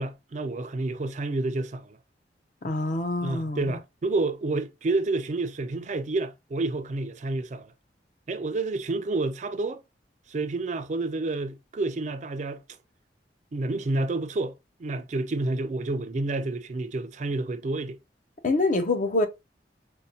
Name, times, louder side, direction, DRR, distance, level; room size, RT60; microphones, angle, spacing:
voice 1, 0.0-2.0 3.2-7.7 8.3-9.8 10.3-12.6 13.5-18.0, right 2 dB, 45° right, 0.4 m, -29 dB
voice 2, 2.6-3.8 18.4-19.3, left 2 dB, 50° left, 0.6 m, -25 dB
5.2 x 2.2 x 2.7 m
head